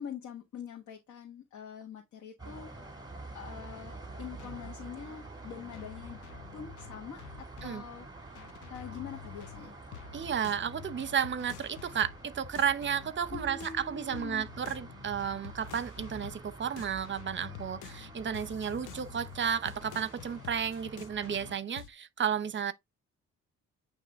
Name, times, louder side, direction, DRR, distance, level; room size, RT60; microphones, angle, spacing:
voice 1, 0.0-2.7 3.3-6.2 6.5-9.8 13.3-14.5, left 7 dB, 70° left, 1.5 m, -44 dB
sound 1, 2.4-21.6, right 3 dB, 15° right, 2.0 m, -48 dB
sound 2, 4.4-4.7 5.7-7.8 8.4-13.9 14.1-16.5 16.8-21.9, left 11 dB, 90° left, 0.7 m, -48 dB
voice 2, 10.1-22.7, right 8 dB, 40° right, 0.8 m, -33 dB
8.9 x 3.0 x 3.6 m
cardioid pair, 90°, 30 cm